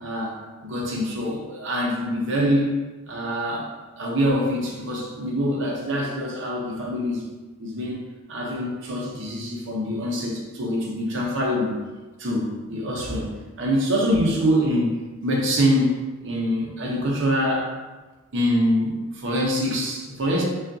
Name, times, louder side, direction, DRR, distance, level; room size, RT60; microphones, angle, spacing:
voice 1, 0.0-2.7 3.1-3.7 4.0-7.2 7.6-11.7 12.2-13.3 13.6-15.9 16.2-17.7 18.3-20.4, equal, 60° right, -2 dB, 0.7 m, -24 dB
5.2 x 2.4 x 2.6 m, 1.2 s
head